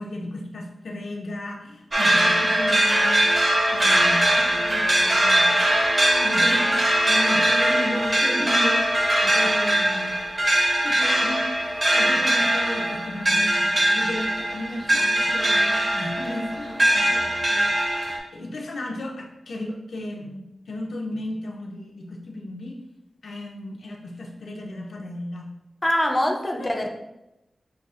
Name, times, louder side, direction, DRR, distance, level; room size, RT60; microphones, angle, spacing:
voice 1, 0.0-5.6 6.2-8.9 9.3-10.2 10.8-11.5 11.9-17.9 18.3-22.8 23.2-25.5 26.6-26.9, left 1 dB, 85° left, 0 dB, 0.6 m, -34 dB
sound 1, 1.9-18.2, right 1 dB, 35° right, 0.7 m, -21 dB
voice 2, 25.8-26.9, left 1 dB, 20° left, 2 dB, 0.5 m, -24 dB
6.4 x 2.4 x 2.4 m, 0.89 s
wide cardioid pair, 115°, 0 cm